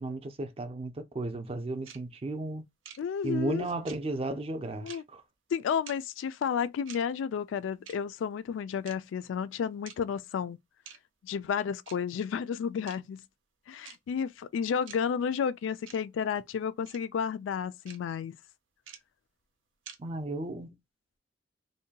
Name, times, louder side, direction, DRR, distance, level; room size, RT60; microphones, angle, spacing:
voice 1, 0.0-2.6 3.2-5.2 20.0-20.7, right 2 dB, 30° right, 0.5 m, -34 dB
sound 1, 1.9-2.0 2.8-3.0 3.9-4.0 4.9-5.0 5.9-6.0 6.9-7.0 7.9-8.0 8.9-9.0 9.9-10.0 10.9-11.0 11.9-12.0 12.9-13.0 13.8-14.0 14.9-15.0 15.9-16.0 16.9-17.0 17.9-18.0 18.9-19.0 19.9-20.0, right 8 dB, 85° right, 0.6 m, -46 dB
voice 2, 3.0-3.7 4.8-5.0 5.5-10.6 11.2-13.2 13.7-18.4, left 7 dB, 80° left, 0.3 m, -32 dB
2.7 x 2.2 x 2.8 m
head